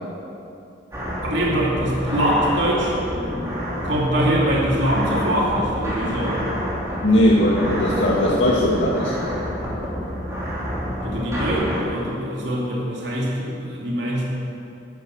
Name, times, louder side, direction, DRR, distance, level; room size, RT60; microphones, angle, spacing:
sound 1, 0.9-11.8, equal, 15° right, 3.0 m, -28 dB
voice 1, 1.2-2.9 3.8-6.4 11.0-14.2, equal, 65° right, -4 dB, 2.7 m, -23 dB
voice 2, 7.0-9.1, left 1 dB, 85° left, -5 dB, 2.1 m, -18 dB
12.0 x 11.5 x 7.8 m, 2.7 s
head